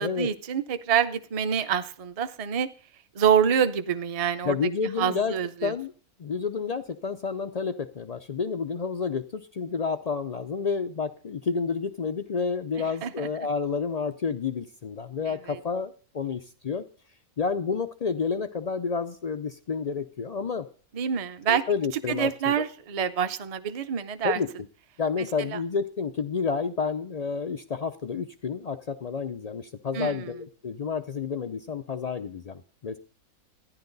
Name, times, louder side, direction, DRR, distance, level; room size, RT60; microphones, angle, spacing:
voice 1, 0.0-2.7 3.1-4.5 5.0-5.7 13.0-13.3 15.3-15.6 20.9-21.6 22.1-24.4 25.2-25.6 29.9-30.3, right 8 dB, 40° right, 10 dB, 0.5 m, -26 dB
voice 2, 4.4-5.3 5.6-5.9 6.2-16.8 17.4-20.7 21.5-22.6 24.2-24.5 25.0-33.0, left 5 dB, 80° left, 9 dB, 0.3 m, -30 dB
13.5 x 10.5 x 3.9 m, 0.40 s
omnidirectional pair, 1.5 m